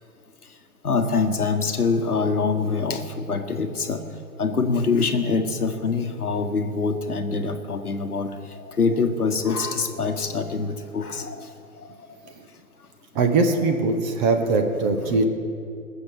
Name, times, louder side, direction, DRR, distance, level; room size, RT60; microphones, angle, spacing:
voice 1, 0.8-4.0 4.4-11.9 14.9-15.3, left 4 dB, 85° left, 6 dB, 1.3 m, -25 dB
voice 2, 13.1-15.3, right 3 dB, 30° right, 6 dB, 1.2 m, -21 dB
20.5 x 7.0 x 6.8 m, 2.5 s
figure-of-eight pair, 115°, 44 cm